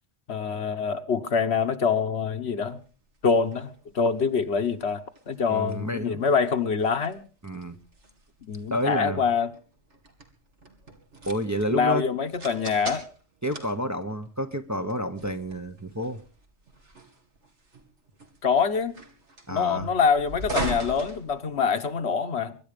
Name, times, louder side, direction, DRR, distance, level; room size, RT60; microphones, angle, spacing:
voice 1, 0.3-2.8 3.2-5.0 5.3-7.2 8.4-9.5 11.7-13.1 18.4-19.0 19.5-22.6, left 5 dB, 65° left, 1.4 m, -25 dB
sound 1, 2.6-22.0, right 2 dB, 70° right, 3.0 m, -41 dB
voice 2, 5.5-6.2 7.4-7.8 8.7-9.2 11.3-12.0 13.4-16.2 19.5-19.9, equal, 15° right, 0.9 m, -29 dB
23.5 x 11.0 x 5.1 m
omnidirectional pair, 1.2 m